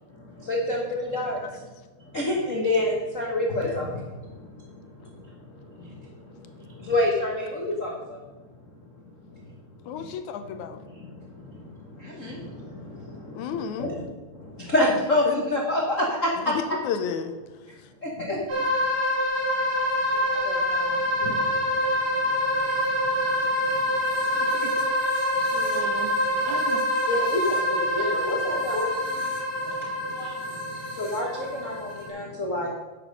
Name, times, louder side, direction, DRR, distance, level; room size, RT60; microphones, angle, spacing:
voice 1, 0.4-1.6 2.1-4.3 5.0-5.2 5.6-6.1 6.6-8.2 9.3-9.4 10.0-10.1 10.9-11.7 12.0-14.0 14.3-16.3 18.0-18.6 20.1-21.7 22.2-22.8 23.6-23.7 24.1-24.2 25.5-25.6 27.1-29.4 29.6-32.7, left 1 dB, 50° left, -2 dB, 0.9 m, -29 dB
voice 2, 9.9-10.8 13.4-13.9 15.3-15.6 16.5-17.4 18.3-18.4 18.8-18.9, left 7 dB, 75° left, 10 dB, 2.1 m, -32 dB
sound 1, 18.5-32.1, left 1 dB, 45° right, 4.4 m, -26 dB
voice 3, 24.4-24.7 25.0-26.2 26.5-26.9, right 6 dB, 70° right, 6 dB, 2.4 m, -38 dB
9.9 x 7.9 x 5.3 m, 1.3 s
omnidirectional pair, 3.5 m